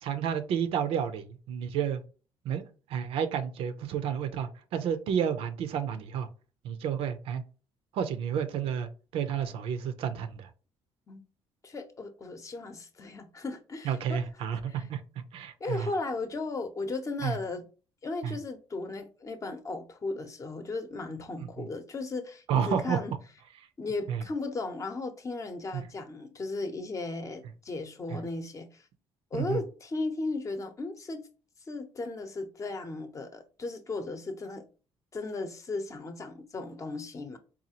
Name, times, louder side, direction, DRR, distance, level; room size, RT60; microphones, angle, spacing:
voice 1, 0.0-2.0 2.4-2.6 2.9-6.3 6.6-7.4 7.9-10.5 13.8-15.9 17.2-17.4 18.2-18.3 21.4-21.7 22.5-23.0 24.1-24.2 25.7-25.8 28.1-28.2 29.3-29.6, right 8 dB, 75° right, 0.6 m, -31 dB
voice 2, 11.6-14.2 14.5-14.9 15.6-17.6 18.0-23.1 23.8-28.8 29.3-31.3 31.7-34.6 35.1-37.4, left 3 dB, 35° left, 0.7 m, -36 dB
4.1 x 2.4 x 2.8 m
cardioid pair, 90°, 10 cm